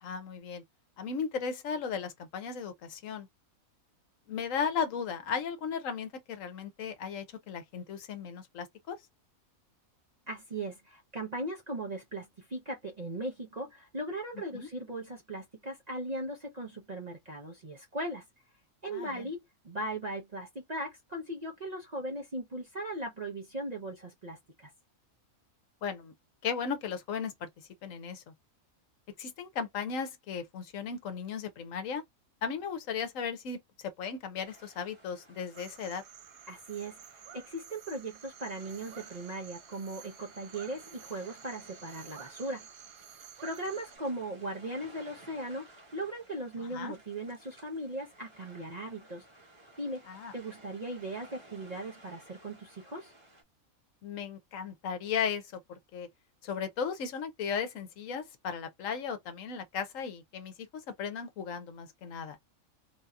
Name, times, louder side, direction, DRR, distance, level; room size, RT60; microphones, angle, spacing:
voice 1, 0.0-0.6 1.0-3.3 4.3-9.0 14.5-14.7 18.9-19.3 25.8-26.1 26.4-27.5 27.8-28.2 29.2-32.0 32.4-36.0 46.6-46.9 50.1-50.3 54.0-55.6 55.9-56.1 56.4-62.4, left 6 dB, 70° left, 1.1 m, -36 dB
voice 2, 10.3-18.2 18.8-24.7 36.5-37.0 37.3-42.6 43.4-45.7 45.9-49.2 49.8-50.0 50.3-53.1, right 1 dB, 40° right, 0.7 m, -38 dB
sound 1, 34.4-53.4, right 1 dB, 20° right, 1.0 m, -57 dB
sound 2, 35.5-44.0, right 10 dB, 80° right, 1.0 m, -52 dB
3.5 x 2.7 x 2.2 m
omnidirectional pair, 1.5 m